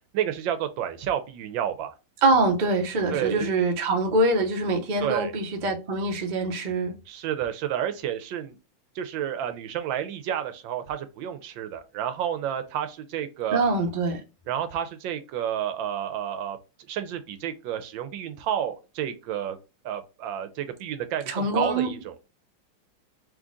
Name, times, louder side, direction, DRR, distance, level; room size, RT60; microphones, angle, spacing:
voice 1, 0.1-1.9 3.1-3.5 5.0-5.3 7.1-8.6 9.0-13.6 14.5-16.6 16.9-19.6 19.8-22.2, right 10 dB, 75° right, 1.3 m, -30 dB
voice 2, 2.2-6.9 13.5-14.2 21.3-21.9, right 2 dB, 45° right, 0.6 m, -24 dB
3.7 x 3.1 x 3.6 m
omnidirectional pair, 2.2 m